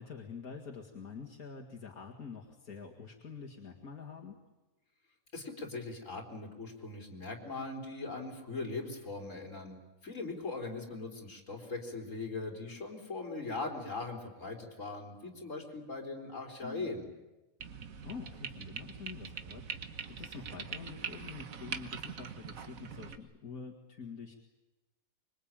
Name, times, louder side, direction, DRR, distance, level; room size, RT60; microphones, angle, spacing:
voice 1, 0.0-4.4 16.6-17.0 18.0-24.4, left 5 dB, 80° left, -2 dB, 2.5 m, -46 dB
voice 2, 5.3-9.8 10.0-17.1, left 3 dB, 60° left, 2 dB, 4.0 m, -40 dB
sound 1, 17.6-23.2, right 6 dB, 70° right, 1.6 m, -43 dB
25.0 x 23.0 x 8.9 m, 1.1 s
omnidirectional pair, 1.5 m